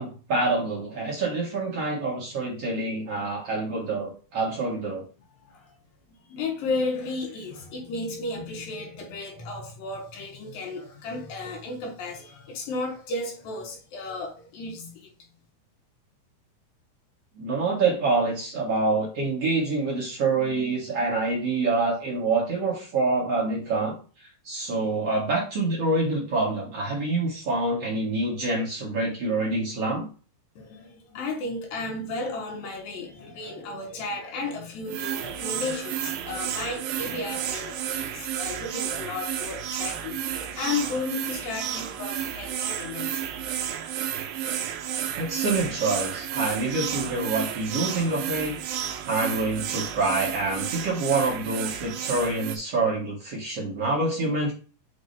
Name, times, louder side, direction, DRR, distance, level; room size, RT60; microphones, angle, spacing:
voice 1, 0.0-5.1 17.4-24.0 24.4-30.1 45.2-48.6 49.1-54.5, right 3 dB, 50° right, 2.2 m, -26 dB
voice 2, 5.4-5.7 6.2-15.1 30.6-43.2, left 3 dB, 70° left, 2.9 m, -34 dB
sound 1, 34.9-52.6, right 10 dB, 75° right, 2.4 m, -32 dB
8.5 x 4.7 x 2.7 m
omnidirectional pair, 4.5 m